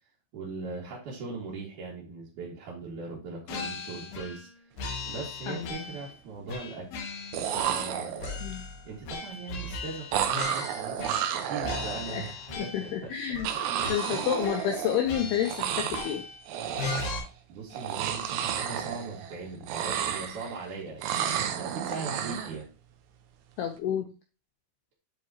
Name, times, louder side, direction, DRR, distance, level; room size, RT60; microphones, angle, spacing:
voice 1, 0.3-4.5 5.1-6.9 7.5-8.3 8.8-13.2 14.1-14.3 17.5-22.7, right 4 dB, 50° right, -6 dB, 3.0 m, -39 dB
sound 1, 3.5-4.5 4.8-6.1 6.5-7.9 8.2-11.4 11.6-13.0 13.3-13.5 13.8-14.8 15.0-16.4 16.8-17.2, left 3 dB, 65° left, 2.6 m, -38 dB
sound 2, 4.9-5.1 5.4-6.0 7.1-7.2 7.3-8.5 10.1-12.3 13.4-15.2 15.4-16.2 16.5-17.3 17.7-19.4 19.6-20.6 21.0-22.6, right 9 dB, 80° right, 3.3 m, -32 dB
voice 2, 5.5-5.9 8.4-8.6 12.1-12.2 12.6-13.5 13.9-16.2 23.6-24.1, left 9 dB, 80° left, 4 dB, 2.3 m, -30 dB
10.0 x 4.8 x 2.9 m, 0.32 s
omnidirectional pair, 5.7 m